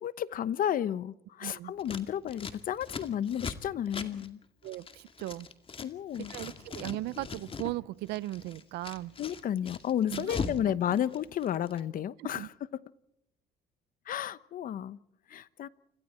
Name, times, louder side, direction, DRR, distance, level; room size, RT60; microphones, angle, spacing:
voice 1, 0.0-4.4 5.8-6.3 9.2-12.8 14.1-15.0 15.3-15.7, left 10 dB, 55° left, 17 dB, 1.0 m, -32 dB
voice 2, 1.4-1.7 4.6-5.5 6.3-9.1 10.1-11.0 12.2-12.5, right 17 dB, 85° right, 20 dB, 0.8 m, -38 dB
Scissors, 1.8-5.9 6.1-7.7 8.0-10.6 10.9-11.8, left 5 dB, 35° left, 2.3 m, -40 dB
29.5 x 27.0 x 4.4 m, 0.79 s
cardioid pair, 110°, 17 cm